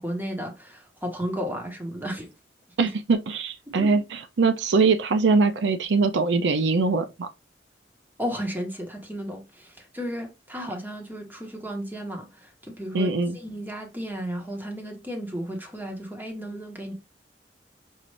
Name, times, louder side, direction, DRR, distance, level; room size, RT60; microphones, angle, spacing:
voice 1, 0.0-2.3 2.8-2.9 3.8-4.0 8.2-16.9, equal, 10° right, 1.1 m, -34 dB
voice 2, 2.8-7.3 12.9-13.4, right 4 dB, 85° right, 0.5 m, -22 dB
5.4 x 2.5 x 3.1 m
head